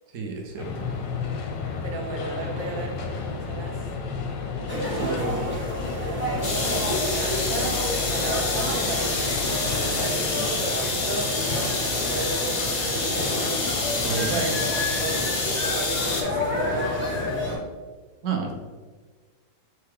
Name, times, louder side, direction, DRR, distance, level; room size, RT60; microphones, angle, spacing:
voice 1, 0.1-0.9 4.9-5.5 14.0-14.4 18.2-18.5, right 5 dB, 65° right, 2 dB, 0.8 m, -30 dB
sound 1, 0.6-17.6, left 4 dB, 80° left, 1.3 m, -33 dB
voice 2, 1.8-3.9 6.0-6.8 7.2-13.7 14.1-15.2 15.6-17.6, right 3 dB, 85° right, 3 dB, 1.4 m, -35 dB
sound 2, 4.7-17.6, left 1 dB, 15° right, 0.4 m, -30 dB
sound 3, 6.4-16.2, left 3 dB, 55° left, 0.6 m, -28 dB
6.5 x 2.3 x 3.4 m, 1.4 s
omnidirectional pair, 2.0 m